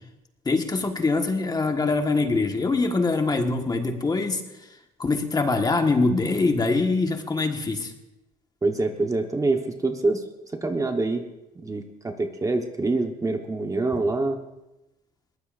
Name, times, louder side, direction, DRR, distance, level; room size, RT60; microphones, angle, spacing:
voice 1, 0.4-4.4 5.0-7.9, left 3 dB, 25° left, 4 dB, 1.5 m, -23 dB
voice 2, 8.6-10.2 10.5-11.2 11.6-14.4, right 3 dB, 20° right, 4 dB, 1.2 m, -25 dB
21.5 x 18.5 x 2.6 m, 0.98 s
cardioid pair, 110°, 17 cm